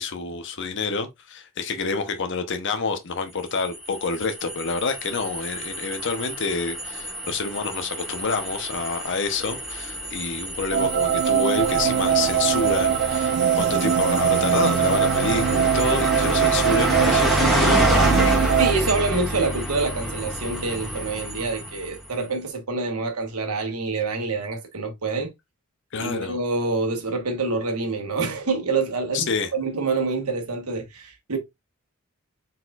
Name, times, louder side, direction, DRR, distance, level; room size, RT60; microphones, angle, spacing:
voice 1, 0.0-18.4 25.9-26.4 29.1-29.5, left 4 dB, 55° left, 0.8 m, -28 dB
sound 1, 3.6-22.1, equal, ahead, 1.3 m, -28 dB
sound 2, 10.7-18.7, right 9 dB, 50° right, 0.3 m, -22 dB
voice 2, 18.6-25.3 26.0-31.4, right 3 dB, 85° right, 1.3 m, -26 dB
4.2 x 4.1 x 2.4 m
head